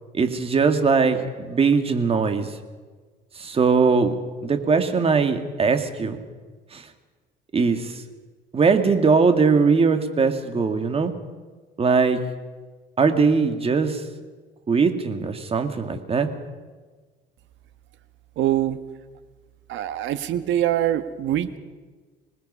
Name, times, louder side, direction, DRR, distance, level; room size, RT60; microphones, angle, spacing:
voice 1, 0.1-2.5 3.4-4.2 4.4-6.2 6.7-6.8 7.5-8.0 8.5-11.1 11.8-12.2 13.0-14.0 14.7-16.3, right 5 dB, 30° right, 7 dB, 1.9 m, -20 dB
voice 2, 18.4-18.8 19.7-21.6, right 12 dB, 65° right, 11 dB, 1.3 m, -23 dB
25.5 x 19.5 x 5.5 m, 1.4 s
cardioid pair, 125°, 21 cm